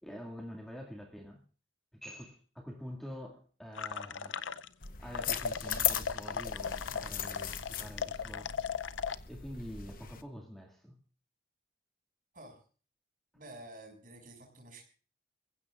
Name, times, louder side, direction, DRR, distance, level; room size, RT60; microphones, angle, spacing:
voice 1, 0.0-1.4 1.9-4.4 5.0-8.5 9.3-11.0, equal, ahead, 2.1 m, -46 dB
sound 1, 3.8-4.9 5.1-9.2, left 6 dB, 75° left, 0.6 m, -37 dB
sound 2, 4.8-10.2, left 10 dB, 45° left, 1.0 m, -38 dB
voice 2, 13.3-14.8, right 1 dB, 45° right, 6.2 m, -50 dB
27.0 x 15.5 x 2.5 m
head